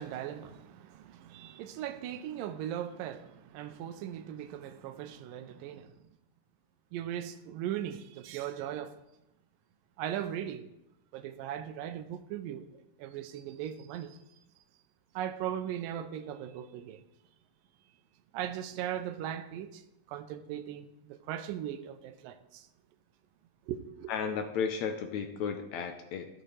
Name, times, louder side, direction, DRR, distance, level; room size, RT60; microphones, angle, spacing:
voice 1, 0.0-6.0 6.9-8.9 10.0-10.7 11.1-12.7 13.0-14.2 15.1-17.0 18.3-22.7 23.7-24.1, right 10 dB, 80° right, 2.2 m, -38 dB
voice 2, 24.1-26.3, left 6 dB, 80° left, 1.7 m, -34 dB
16.0 x 8.9 x 3.2 m
omnidirectional pair, 4.1 m